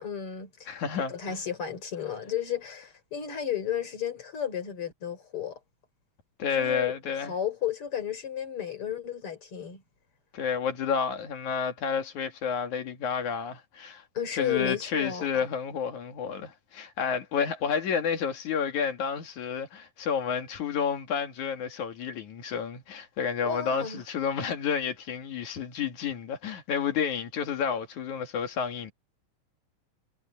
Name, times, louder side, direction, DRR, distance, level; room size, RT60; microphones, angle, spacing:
voice 1, 0.0-0.8 1.1-5.6 6.5-6.9 7.3-9.8 14.1-15.5 23.4-24.0, left 9 dB, 40° left, 5.3 m, -33 dB
voice 2, 0.7-1.1 6.4-7.3 10.3-14.0 14.3-28.9, left 6 dB, 65° left, 3.4 m, -30 dB
omnidirectional pair, 3.7 m